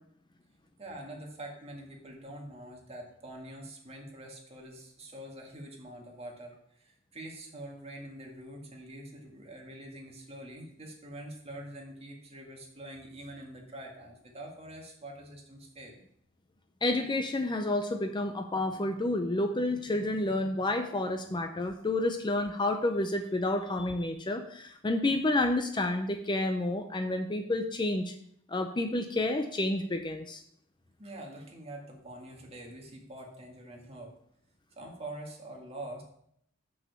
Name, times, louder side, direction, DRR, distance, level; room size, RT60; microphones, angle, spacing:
voice 1, 0.8-16.0 31.0-34.1 34.8-36.0, right 1 dB, 30° right, 0 dB, 1.9 m, -45 dB
voice 2, 16.8-28.1 28.5-30.4, left 2 dB, 25° left, 6 dB, 0.5 m, -30 dB
6.4 x 6.0 x 6.9 m, 0.69 s
head